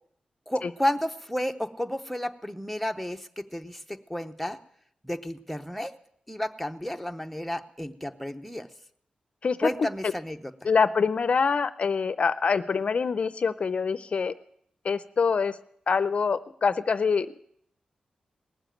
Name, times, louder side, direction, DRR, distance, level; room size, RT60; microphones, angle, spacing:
voice 1, 0.5-4.6 5.0-5.9 6.3-8.7 9.6-10.5, left 1 dB, ahead, 5 dB, 0.8 m, -32 dB
voice 2, 9.4-9.9 10.6-14.3 14.8-15.6 15.9-17.3, left 5 dB, 55° left, 14 dB, 0.5 m, -25 dB
19.0 x 7.1 x 9.0 m, 0.69 s
wide cardioid pair, 105°, 3 cm